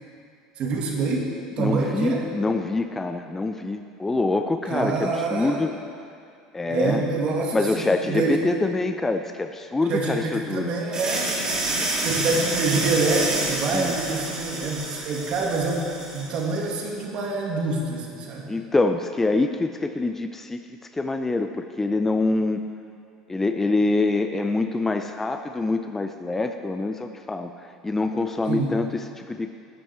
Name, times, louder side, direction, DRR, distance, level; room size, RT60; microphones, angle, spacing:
voice 1, 0.6-1.3 1.6-2.2 4.7-5.6 6.7-8.5 9.9-11.4 12.0-15.9 16.1-18.5 28.5-28.8, right 3 dB, 50° right, -1 dB, 1.9 m, -26 dB
voice 2, 1.6-5.8 6.5-7.0 7.5-10.7 13.7-14.0 18.5-20.6 20.9-22.6 23.3-29.5, left 3 dB, 15° left, 7 dB, 0.5 m, -25 dB
sound 1, 10.9-16.6, right 2 dB, 30° right, 2.9 m, -28 dB
12.5 x 9.3 x 3.5 m, 2.4 s
hypercardioid pair, 80°, 2 cm